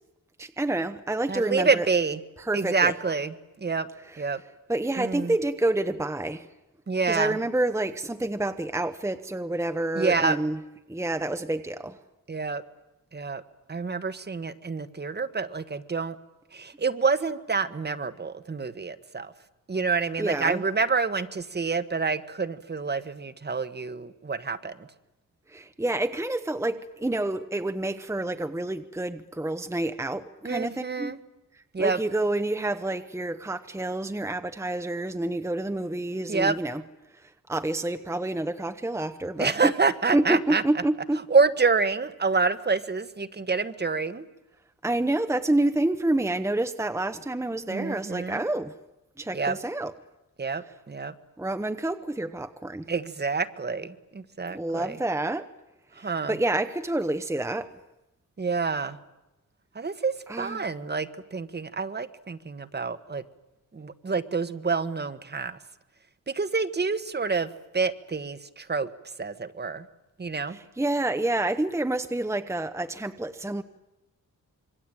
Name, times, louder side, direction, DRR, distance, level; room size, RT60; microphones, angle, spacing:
voice 1, 0.4-1.9 2.5-2.9 4.1-4.2 4.7-6.5 7.1-10.6 10.9-12.0 20.2-20.6 25.5-31.1 31.5-36.8 37.2-39.7 40.1-41.2 44.8-48.8 49.2-49.9 51.4-52.9 54.5-55.5 56.0-57.7 60.3-60.7 70.5-73.6, right 2 dB, 10° right, 9 dB, 1.0 m, -28 dB
voice 2, 1.3-2.2 2.5-3.9 4.2-4.4 5.0-5.3 6.9-7.4 9.9-10.4 12.3-12.6 13.1-13.4 13.7-16.2 16.5-19.3 19.7-24.9 30.4-31.2 31.7-32.0 36.3-36.6 39.4-40.6 41.3-44.2 47.7-48.4 49.3-49.6 50.4-51.1 52.9-55.0 56.0-56.4 58.4-59.0 59.7-63.2 63.7-65.6 66.3-68.9 69.2-69.8 70.2-70.6, right 4 dB, 30° right, 13 dB, 1.4 m, -27 dB
26.0 x 23.5 x 9.1 m, 0.97 s
wide cardioid pair, 110°, 32 cm